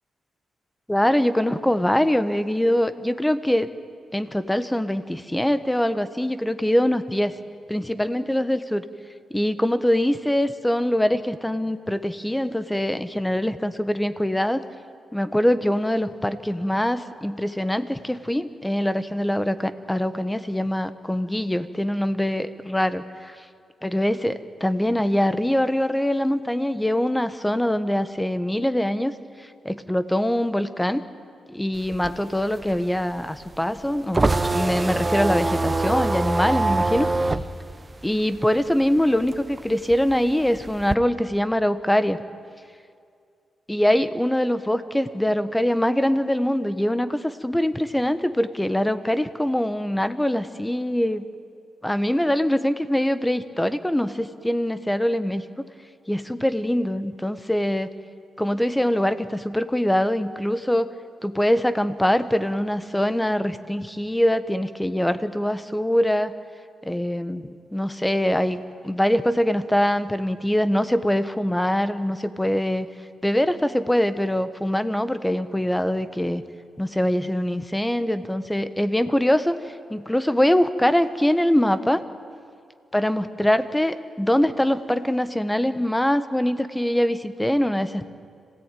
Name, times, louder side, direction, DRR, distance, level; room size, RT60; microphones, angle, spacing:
voice 1, 0.9-3.7 4.1-7.3 7.7-8.9 9.3-14.6 15.1-23.4 23.8-29.1 29.6-31.0 31.5-37.1 38.0-42.2 43.7-51.3 51.8-55.4 56.1-57.9 58.4-60.9 61.2-66.3 66.8-68.6 68.8-72.9 73.2-76.4 76.8-79.5 79.9-82.0 82.9-88.0, left 1 dB, 5° left, 12 dB, 1.0 m, -23 dB
sound 1, 31.8-38.9 39.2-40.9, right 2 dB, 20° right, 0.8 m, -24 dB
26.5 x 17.0 x 9.1 m, 2.3 s
cardioid pair, 120°, 0 cm